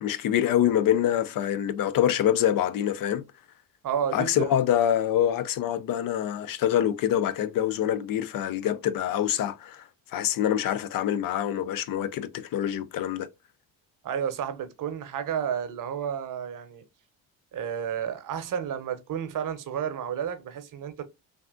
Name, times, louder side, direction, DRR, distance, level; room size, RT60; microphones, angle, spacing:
voice 1, 0.0-3.2 4.1-13.3, left 10 dB, 55° left, 0.5 m, -25 dB
voice 2, 3.8-4.5 14.0-16.8 17.5-21.1, right 8 dB, 50° right, 0.8 m, -31 dB
3.4 x 2.4 x 2.4 m
supercardioid pair, 70°, 41 cm